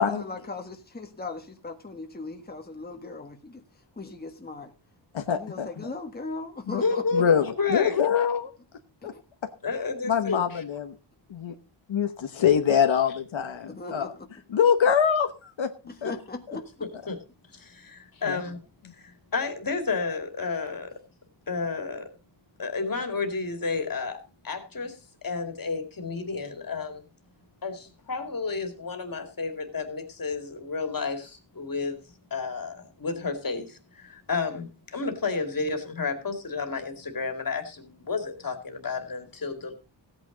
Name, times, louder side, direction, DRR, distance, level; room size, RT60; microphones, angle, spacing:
voice 1, 0.0-3.6 4.0-4.7 5.3-7.2 9.0-9.2 13.7-14.3 16.0-16.6, left 3 dB, 20° left, 4 dB, 1.5 m, -38 dB
voice 2, 5.1-5.9 6.7-6.8 7.1-8.5 9.0-9.1 10.0-10.9 11.3-11.5 11.9-14.1 14.5-15.7 16.0-16.1 18.2-18.4, left 7 dB, 75° left, 7 dB, 1.1 m, -24 dB
voice 3, 6.8-8.0 9.6-10.6 17.1-17.2 17.9-18.6 19.3-20.9 21.5-22.0 22.6-24.2 24.4-24.9 25.2-27.0 27.6-27.8 28.1-31.3 31.6-31.9 32.3-33.6 34.3-34.7 34.9-39.7, left 4 dB, 45° left, 5 dB, 2.5 m, -30 dB
16.0 x 9.1 x 3.9 m, 0.32 s
wide cardioid pair, 155°, 46 cm